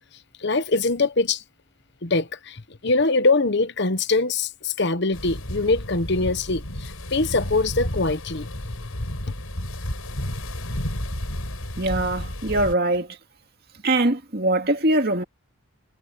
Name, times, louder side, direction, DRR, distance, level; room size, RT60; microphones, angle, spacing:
voice 1, 0.4-1.4 2.0-8.7, left 3 dB, 55° left, 1.1 m, -23 dB
sound 1, 5.1-12.8, left 1 dB, 90° left, 6.3 m, -32 dB
voice 2, 11.8-13.2 13.8-15.2, right 2 dB, 45° right, 2.4 m, -22 dB
head